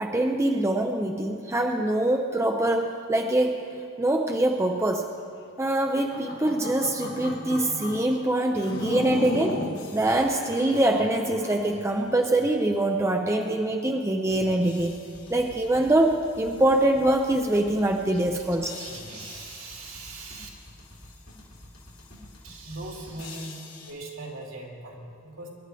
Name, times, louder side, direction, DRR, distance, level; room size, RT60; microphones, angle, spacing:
voice 1, 0.0-3.7 4.0-5.0 5.6-9.6 9.9-15.0 15.3-18.7, right 1 dB, 15° right, 3 dB, 0.6 m, -24 dB
sound 1, 6.0-8.1 8.6-9.8 10.3-11.7, left 1 dB, 60° left, 1.5 m, -34 dB
sound 2, 8.5-13.0 13.4-13.5 14.3-23.9, left 2 dB, 80° left, 3.5 m, -47 dB
voice 2, 18.8-20.5 22.4-25.5, right 2 dB, 70° right, -2 dB, 2.7 m, -40 dB
25.0 x 11.5 x 3.4 m, 2.3 s
head